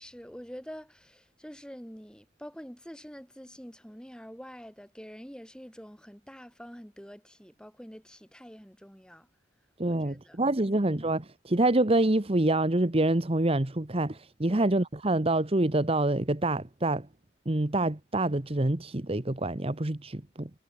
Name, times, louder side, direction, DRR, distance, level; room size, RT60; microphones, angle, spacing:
voice 1, 0.0-9.3 9.9-10.8 14.5-14.7, equal, 5° left, 5.9 m, -46 dB
voice 2, 9.8-17.1 17.5-20.5, right 2 dB, 30° right, 1.1 m, -26 dB
head